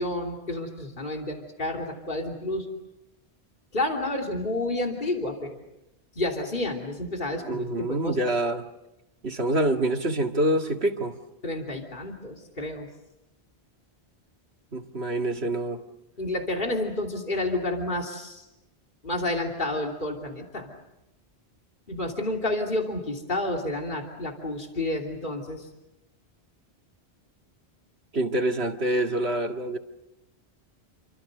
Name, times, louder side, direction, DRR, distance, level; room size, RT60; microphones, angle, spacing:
voice 1, 0.0-2.7 3.7-5.6 6.1-8.2 11.4-12.9 16.2-18.4 19.0-20.7 21.9-25.7, left 1 dB, 50° left, 3.2 m, -30 dB
voice 2, 7.4-8.7 9.2-11.2 14.7-15.8 28.1-29.8, right 1 dB, 75° right, 2.2 m, -26 dB
29.5 x 25.0 x 6.7 m
omnidirectional pair, 1.1 m